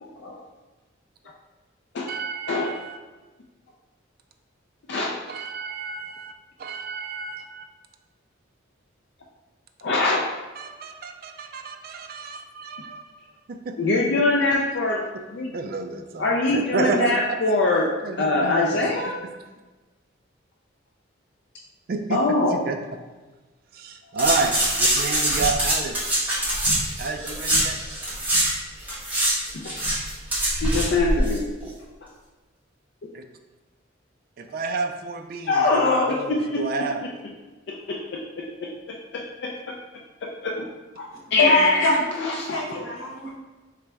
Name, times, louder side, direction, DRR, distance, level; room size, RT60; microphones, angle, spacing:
voice 1, 0.0-0.4 1.9-2.1 2.5-2.7 4.9-5.1 9.8-10.2 13.8-15.0 15.3-15.5 16.2-17.9 18.2-19.1 22.1-22.6 29.5-29.7 30.5-31.4 35.5-36.9 37.7-39.8 40.2-40.7 41.0-41.9 42.2-42.6, left 2 dB, 60° left, -2 dB, 0.4 m, -24 dB
voice 2, 2.1-3.0 5.3-6.3 6.6-7.6 10.6-13.0 13.5-13.8 14.2-14.3 15.5-17.4 18.0-18.9 21.9-22.2 22.5-22.8 23.7-26.0 27.0-27.8 33.1-33.2 34.4-37.0, right 4 dB, 50° right, 6 dB, 0.3 m, -30 dB
sound 1, 24.2-28.5 28.8-31.4 31.6-31.7, right 1 dB, 10° right, 1.0 m, -23 dB
voice 3, 41.4-43.4, left 2 dB, 80° left, -3 dB, 1.1 m, -23 dB
3.9 x 3.2 x 3.4 m, 1.2 s
head